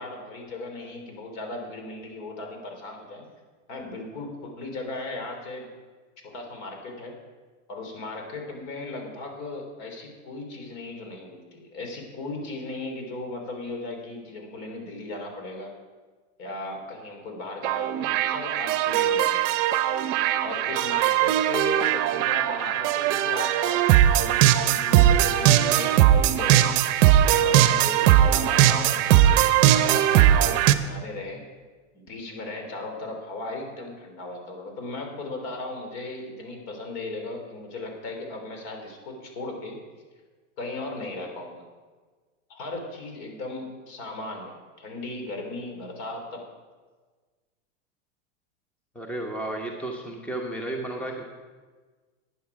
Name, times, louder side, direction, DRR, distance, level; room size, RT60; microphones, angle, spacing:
voice 1, 0.0-3.3 3.7-5.7 6.2-7.1 7.7-15.7 16.4-19.5 20.4-24.0 24.2-26.8 27.2-31.4 31.9-39.8 40.6-41.6 42.5-46.4, left 2 dB, 55° left, 3 dB, 3.3 m, -37 dB
sound 1, 17.6-30.7, right 12 dB, 45° right, 0.7 m, -20 dB
voice 2, 48.9-51.2, right 1 dB, 5° left, 2 dB, 1.0 m, -33 dB
11.5 x 9.5 x 4.8 m, 1.4 s
hypercardioid pair, 120°, 38 cm